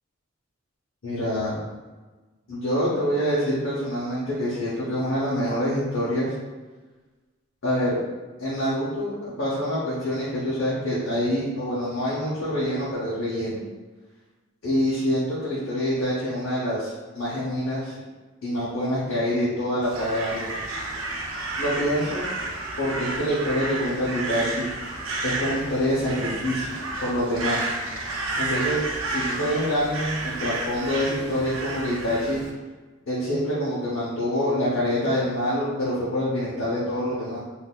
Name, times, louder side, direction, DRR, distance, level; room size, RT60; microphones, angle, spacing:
voice 1, 1.0-1.6 2.5-6.3 7.6-8.0 8.4-13.6 14.6-18.0 18.4-20.5 21.6-22.3 22.8-24.7 25.2-27.7 28.4-32.4 33.1-37.4, equal, 75° left, -8 dB, 0.9 m, -26 dB
Crow, 19.8-32.5, right 2 dB, 85° right, 0.6 m, -31 dB
3.9 x 2.6 x 2.3 m, 1.3 s
head